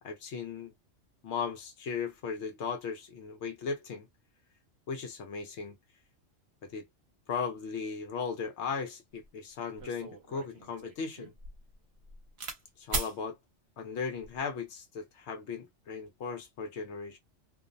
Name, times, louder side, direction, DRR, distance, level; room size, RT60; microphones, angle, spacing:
voice 1, 0.0-0.7 1.2-4.1 4.9-5.8 6.6-6.9 7.3-11.3 12.8-13.4 13.8-17.2, left 5 dB, 70° left, 0.8 m, -37 dB
sound 1, 9.2-9.3 9.8-12.6 12.9-13.2 14.0-14.4, right 3 dB, 65° right, 1.0 m, -39 dB
2.5 x 2.0 x 2.4 m
omnidirectional pair, 1.3 m